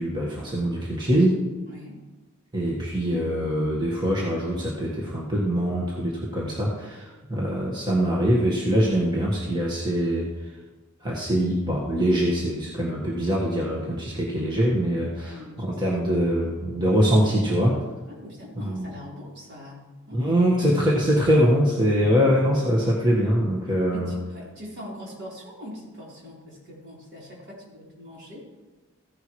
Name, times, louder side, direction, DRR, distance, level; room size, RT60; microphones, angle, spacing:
voice 1, 0.0-1.4 2.5-10.3 11.0-17.8 18.6-18.8 20.1-24.1, equal, 20° right, -4 dB, 1.5 m, -23 dB
voice 2, 1.7-2.0 15.2-15.8 16.3-16.6 18.1-20.4 21.9-22.1 23.9-28.5, left 1 dB, 55° right, -5 dB, 4.0 m, -42 dB
15.0 x 10.5 x 3.2 m, 1.2 s
head